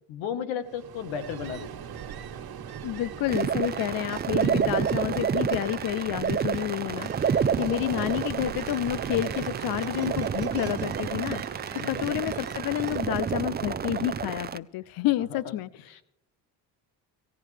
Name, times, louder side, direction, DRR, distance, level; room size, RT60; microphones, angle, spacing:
voice 1, 0.1-1.9 7.4-7.6 11.8-12.1 15.3-15.5 15.9-16.0, left 7 dB, 80° left, 11 dB, 1.3 m, -35 dB
Ocean, 0.6-13.4, right 8 dB, 55° right, 1.4 m, -40 dB
voice 2, 2.8-11.4 11.9-16.0, left 13 dB, 50° left, 20 dB, 0.5 m, -30 dB
sound 1, 3.3-14.6, right 7 dB, 20° right, 0.5 m, -29 dB
18.5 x 15.0 x 3.3 m, 0.72 s
supercardioid pair, 70°, 45 cm